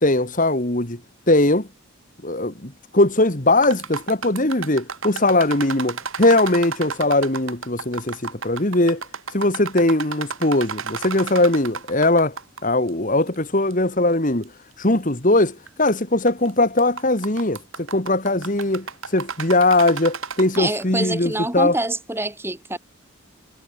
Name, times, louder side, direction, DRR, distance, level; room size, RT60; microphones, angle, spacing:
voice 1, 0.0-1.0 1.3-1.7 2.2-9.0 9.3-12.3 12.6-14.5 14.8-17.6 17.9-18.9 19.1-21.8, left 2 dB, 35° left, 2.2 m, -20 dB
sound 1, 3.6-12.6 12.9-13.0 13.7-13.8 14.4-14.5 15.7-15.9 16.3-16.5 16.8-20.8, right 5 dB, 65° right, 2.7 m, -32 dB
voice 2, 20.6-22.8, right 2 dB, 10° right, 2.1 m, -26 dB
head